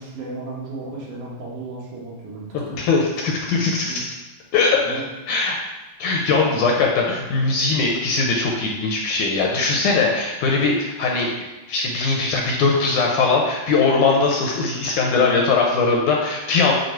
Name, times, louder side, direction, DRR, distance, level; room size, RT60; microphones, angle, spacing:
voice 1, 0.0-2.5 3.9-4.0 4.8-5.0 6.4-6.9 7.9-8.0, right 3 dB, 70° right, -4 dB, 2.6 m, -34 dB
voice 2, 2.7-3.9 4.5-5.0 5.3-5.6 6.0-11.3 11.7-16.7, left 4 dB, 75° left, -1 dB, 1.9 m, -20 dB
7.8 x 2.7 x 4.4 m, 1.1 s
omnidirectional pair, 4.0 m